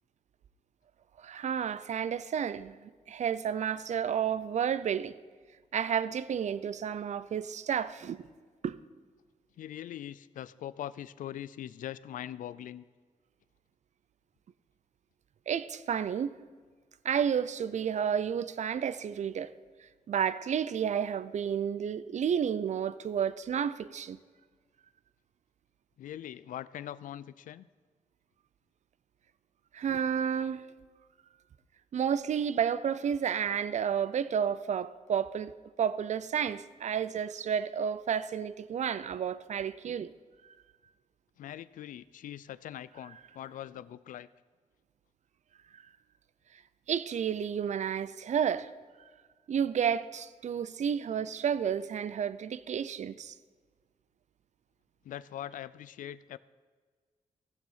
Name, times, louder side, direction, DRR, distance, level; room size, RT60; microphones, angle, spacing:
voice 1, 1.2-5.1 5.7-8.2 8.6-8.8 15.5-16.4 17.0-19.5 20.1-24.2 29.7-30.6 31.9-35.5 35.8-40.1 46.9-48.7 49.5-53.3, right 8 dB, 60° right, 0.5 m, -31 dB
voice 2, 9.6-12.8 26.0-27.7 41.4-44.3 55.0-56.4, left 11 dB, 85° left, 0.4 m, -42 dB
15.5 x 7.4 x 5.6 m
cardioid pair, 85°, 13 cm